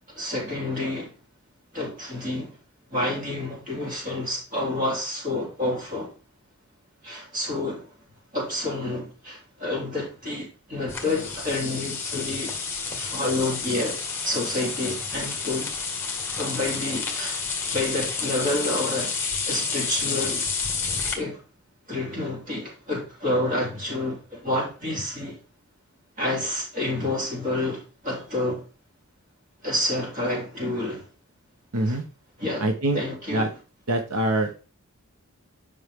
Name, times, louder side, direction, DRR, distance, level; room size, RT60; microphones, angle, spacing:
voice 1, 0.1-1.1 1.7-2.6 2.9-6.1 7.0-7.9 8.3-12.5 12.9-14.0 14.2-15.8 16.4-17.4 17.7-19.1 19.5-20.5 21.1-21.4 21.9-25.4 26.2-28.6 29.6-31.0 31.9-32.0 32.4-32.7 32.9-33.5, left 1 dB, 35° right, 3.4 m, -29 dB
sound 1, 10.9-21.1, left 5 dB, 10° left, 1.7 m, -30 dB
voice 2, 31.7-32.0 32.6-33.0 33.3-33.5 33.9-34.6, right 1 dB, 90° right, 1.1 m, -24 dB
9.7 x 5.5 x 3.7 m
head